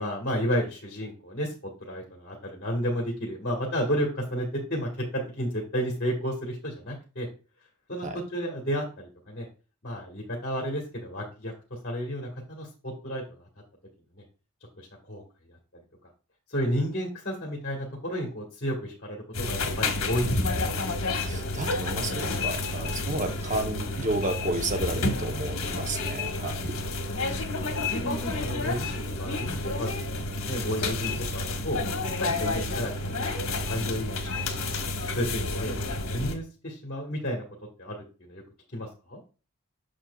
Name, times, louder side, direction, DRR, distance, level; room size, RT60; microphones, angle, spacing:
voice 1, 0.0-1.5 1.8-7.3 7.9-9.5 9.8-13.5 14.1-14.2 14.8-15.2 15.5-15.6 16.5-20.6 23.2-23.4 27.0-27.6 27.9-30.0 30.3-31.8 32.2-33.0 33.3-34.8 35.1-37.4 37.8-38.4 38.7-39.2, equal, 45° left, -1 dB, 1.6 m, -32 dB
sound 1, 19.3-36.3, left 2 dB, 65° left, 1.3 m, -30 dB
voice 2, 21.2-26.7, right 1 dB, 35° right, 6 dB, 0.8 m, -32 dB
7.4 x 6.5 x 2.3 m, 0.35 s
head